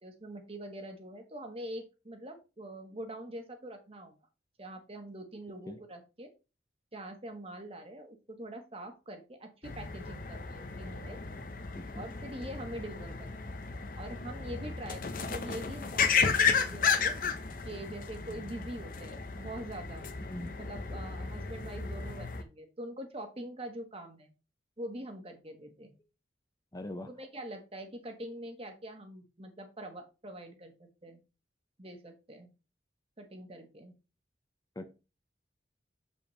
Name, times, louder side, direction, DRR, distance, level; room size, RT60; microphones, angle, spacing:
voice 1, 0.0-4.2 4.6-6.3 6.9-11.2 11.9-13.5 14.0-17.2 17.6-24.3 24.8-25.9 27.1-31.2 31.8-32.5 33.2-34.0, right 1 dB, 30° right, 5 dB, 1.3 m, -44 dB
sound 1, 9.6-22.4, left 5 dB, 50° left, 0.8 m, -33 dB
voice 2, 11.7-12.0 20.3-20.6 26.7-27.1 34.8-34.9, left 1 dB, 20° left, 7 dB, 0.7 m, -42 dB
7.3 x 7.0 x 3.2 m, 0.30 s
head